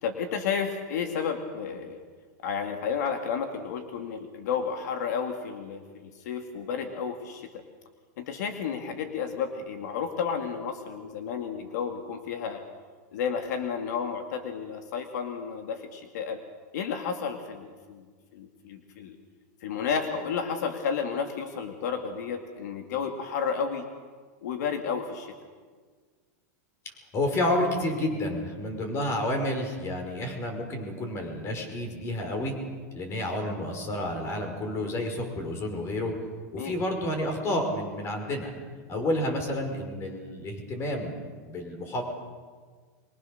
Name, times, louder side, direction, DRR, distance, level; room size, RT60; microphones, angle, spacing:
voice 1, 0.0-2.0 2.4-7.6 8.2-12.6 13.1-16.4 16.7-18.1 18.3-19.2 19.6-23.9 24.4-25.3 36.6-36.8, left 6 dB, 80° left, 5 dB, 2.4 m, -32 dB
voice 2, 27.1-32.5 32.9-36.1 36.5-38.5 38.9-41.1 41.5-42.0, left 1 dB, 30° left, 5 dB, 5.3 m, -30 dB
24.5 x 22.5 x 6.7 m, 1.6 s
supercardioid pair, 140°, 9 cm